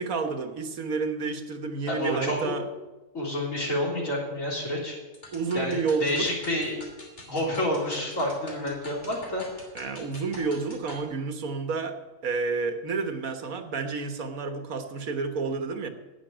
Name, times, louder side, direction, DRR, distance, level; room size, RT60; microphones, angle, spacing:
voice 1, 0.0-2.7 5.3-6.3 9.7-15.9, right 4 dB, 85° right, 7 dB, 1.7 m, -30 dB
voice 2, 1.9-2.5 3.1-5.0 5.5-6.8 7.3-9.4, left 1 dB, 70° left, -2 dB, 4.0 m, -29 dB
sound 1, 5.1-11.1, left 1 dB, 55° left, 3.4 m, -46 dB
11.0 x 9.2 x 8.9 m, 1.2 s
omnidirectional pair, 1.4 m